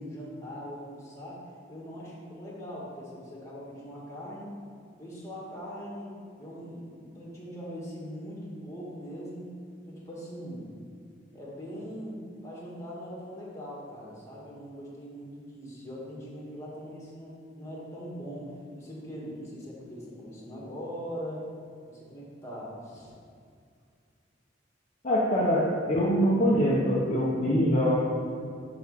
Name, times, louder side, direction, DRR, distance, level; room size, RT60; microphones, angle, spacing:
voice 1, 0.0-4.6 5.0-9.6 9.9-10.7 11.3-21.4 21.9-23.1, equal, 15° left, -5 dB, 2.2 m, -41 dB
voice 2, 25.0-28.0, equal, 40° left, -6 dB, 1.1 m, -24 dB
9.8 x 4.1 x 6.8 m, 2.3 s
head